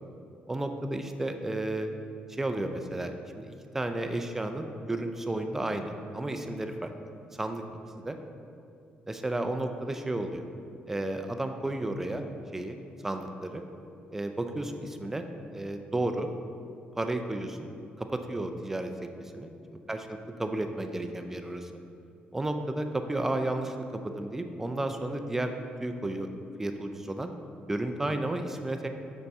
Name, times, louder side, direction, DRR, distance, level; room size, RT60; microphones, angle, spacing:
voice 1, 0.5-1.9 2.3-6.9 7.3-7.6 8.0-8.2 9.1-10.4 10.9-12.2 12.5-12.8 13.0-13.6 14.1-15.3 15.5-16.3 17.0-17.7 18.0-19.5 19.9-20.0 20.4-21.7 22.3-23.8 24.0-25.5 25.8-26.3 26.6-27.3 27.7-28.9, right 1 dB, 10° right, 6 dB, 0.4 m, -32 dB
6.8 x 5.4 x 3.5 m, 2.5 s
cardioid pair, 150°, 3 cm